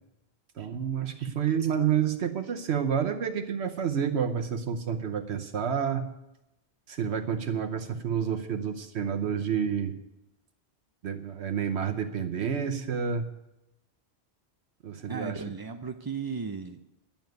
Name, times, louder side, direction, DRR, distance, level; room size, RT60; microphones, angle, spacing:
voice 1, 0.6-6.0 6.9-9.9 11.0-13.3 14.8-15.3, right 7 dB, 75° right, 5 dB, 1.1 m, -29 dB
voice 2, 15.0-16.8, right 5 dB, 35° right, 6 dB, 0.3 m, -35 dB
10.5 x 7.2 x 9.3 m, 0.91 s
omnidirectional pair, 1.1 m